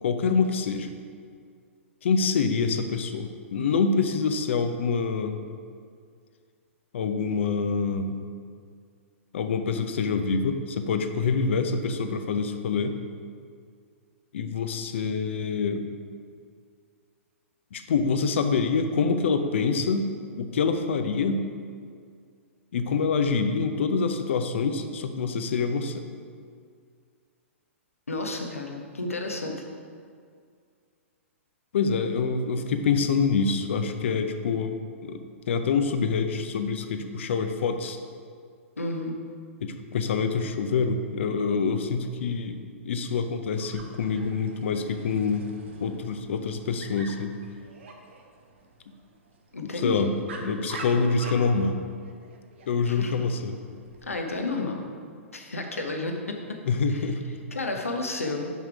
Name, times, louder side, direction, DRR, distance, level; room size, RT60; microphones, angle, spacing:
voice 1, 0.0-0.9 2.0-5.4 6.9-8.2 9.3-12.9 14.3-15.9 17.7-20.1 20.4-21.4 22.7-26.1 31.7-38.0 39.6-42.6 42.8-45.5 45.8-47.3 49.6-50.1 50.4-51.8 52.7-53.5 56.7-57.2, left 5 dB, 60° left, 7 dB, 0.6 m, -26 dB
voice 2, 28.1-29.6 38.8-39.2 49.5-50.0 52.8-53.1 54.0-54.8 55.3-56.4 56.9-57.0 57.5-58.5, left 2 dB, 85° left, 3 dB, 0.9 m, -31 dB
Dog, 43.6-54.2, right 3 dB, 60° right, 1.0 m, -46 dB
5.7 x 5.5 x 4.8 m, 2.2 s
figure-of-eight pair, 115°, 7 cm